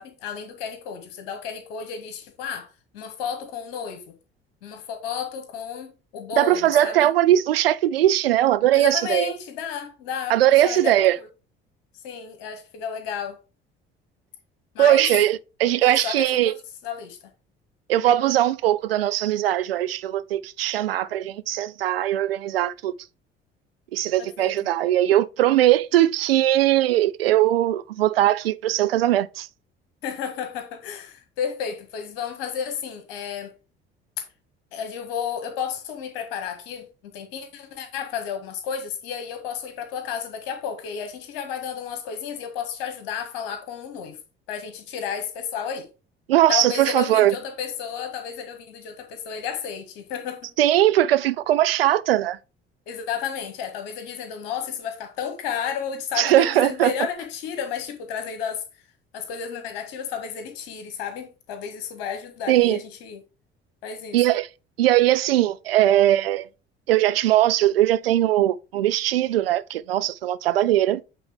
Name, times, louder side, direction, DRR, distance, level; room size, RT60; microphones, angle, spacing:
voice 1, 0.0-2.7 2.9-4.1 4.6-7.1 8.7-11.3 12.0-13.4 14.7-15.1 15.8-16.6 16.8-17.2 24.2-24.5 30.0-33.5 34.7-44.2 44.5-45.9 46.5-50.5 52.9-58.6 59.1-63.2 63.8-64.2, left 8 dB, 65° left, 1.7 m, -32 dB
voice 2, 6.4-9.3 10.3-11.2 14.8-16.5 17.9-22.9 23.9-29.5 46.3-47.3 50.6-52.4 56.2-56.9 62.5-62.8 64.1-64.5 64.8-66.5 66.9-71.0, right 13 dB, 75° right, 0.5 m, -20 dB
8.2 x 4.0 x 3.5 m
figure-of-eight pair, 55°, 30 cm